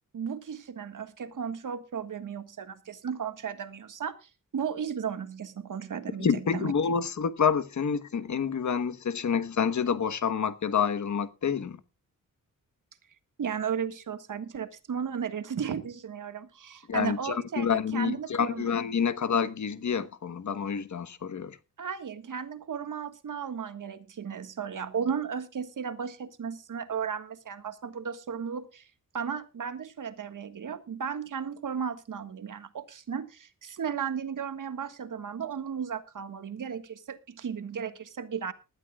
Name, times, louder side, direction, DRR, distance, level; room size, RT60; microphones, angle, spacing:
voice 1, 0.1-6.7 13.4-18.6 21.8-28.9 29.1-38.5, right 7 dB, 65° right, 1.6 m, -35 dB
voice 2, 6.2-11.8 16.9-21.6, left 6 dB, 55° left, 1.2 m, -28 dB
19.5 x 13.0 x 2.3 m
wide cardioid pair, 115°, 33 cm